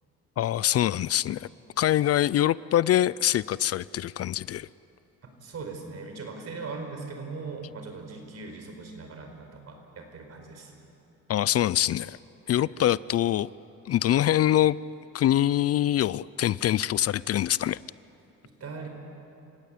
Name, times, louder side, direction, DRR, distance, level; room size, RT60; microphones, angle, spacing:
voice 1, 0.4-1.5 1.8-4.7 11.3-12.2 12.5-13.5 13.9-14.8 15.1-17.8, left 12 dB, 55° left, 21 dB, 0.4 m, -24 dB
voice 2, 5.2-10.7 12.5-12.7 18.4-18.9, right 4 dB, 55° right, 4 dB, 4.9 m, -40 dB
28.0 x 16.5 x 8.6 m, 2.8 s
cardioid pair, 90°, 30 cm